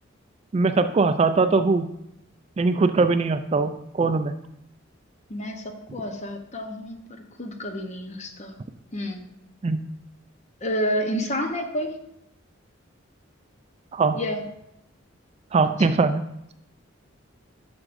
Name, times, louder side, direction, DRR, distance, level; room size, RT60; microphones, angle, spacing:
voice 1, 0.5-1.9 2.6-4.3 9.6-9.8 13.9-14.2 15.5-16.2, right 4 dB, 30° right, 10 dB, 0.3 m, -21 dB
voice 2, 5.3-8.5 8.9-9.2 10.6-12.0 14.2-14.4 15.6-15.7, equal, 35° left, 5 dB, 0.8 m, -30 dB
11.0 x 6.1 x 2.6 m, 0.81 s
head